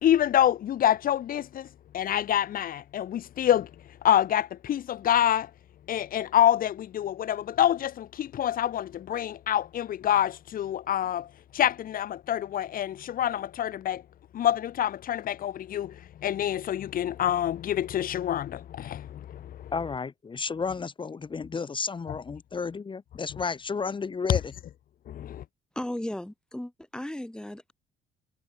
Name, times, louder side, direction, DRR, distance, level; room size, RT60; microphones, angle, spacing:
voice 1, 0.0-1.7 1.9-3.7 4.0-5.5 5.9-11.3 11.5-14.0 14.3-15.9 16.2-19.7 25.1-25.4, left 11 dB, 55° left, 2.7 m, -26 dB
voice 2, 19.7-24.5, left 5 dB, 30° left, 7.7 m, -32 dB
voice 3, 25.8-27.7, left 1 dB, 5° left, 7.7 m, -35 dB
cardioid pair, 110°, 17 cm